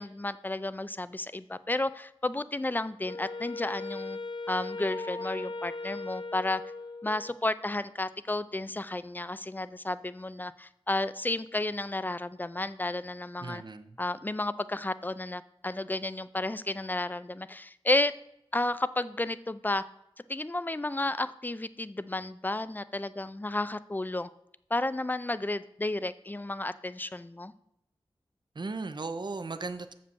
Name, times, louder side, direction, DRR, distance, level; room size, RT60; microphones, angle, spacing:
voice 1, 0.0-4.2 4.5-6.6 7.0-13.6 14.0-18.1 18.5-19.8 20.3-24.3 24.7-27.5, left 2 dB, 15° left, 14 dB, 0.5 m, -32 dB
Wind instrument woodwind instrument, 3.0-7.4, left 3 dB, 45° left, 0.8 m, -38 dB
voice 2, 13.4-14.0 28.5-29.9, right 3 dB, 45° right, 9 dB, 0.6 m, -36 dB
6.9 x 5.2 x 7.0 m, 0.81 s
cardioid pair, 40°, 10 cm